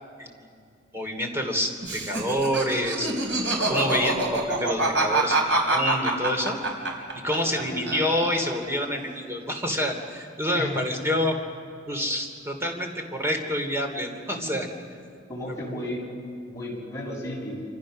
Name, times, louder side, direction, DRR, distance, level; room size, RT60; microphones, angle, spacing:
voice 1, 0.9-3.2 3.7-6.6 7.2-11.4 11.9-14.7 15.5-15.6, equal, 15° right, 4 dB, 2.8 m, -27 dB
Laughter, 1.8-7.6 7.9-8.7, right 2 dB, 90° right, 4.6 m, -25 dB
voice 2, 7.5-7.9 10.5-10.8 14.3-14.6 15.3-16.0 16.5-17.6, left 1 dB, 20° left, -4 dB, 6.7 m, -34 dB
27.5 x 26.5 x 6.5 m, 2.3 s
head